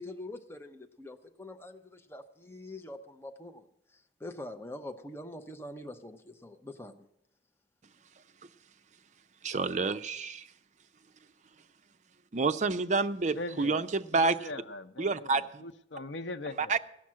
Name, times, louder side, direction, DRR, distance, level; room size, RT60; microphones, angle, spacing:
voice 1, 0.0-3.7 4.2-7.1, left 1 dB, 15° left, 0.7 m, -44 dB
voice 2, 9.4-10.5 12.3-14.5 15.0-15.6 16.6-16.8, right 4 dB, 40° right, 0.5 m, -29 dB
voice 3, 13.3-13.9 14.2-16.7, left 2 dB, 90° left, 0.7 m, -41 dB
17.0 x 5.9 x 7.5 m
head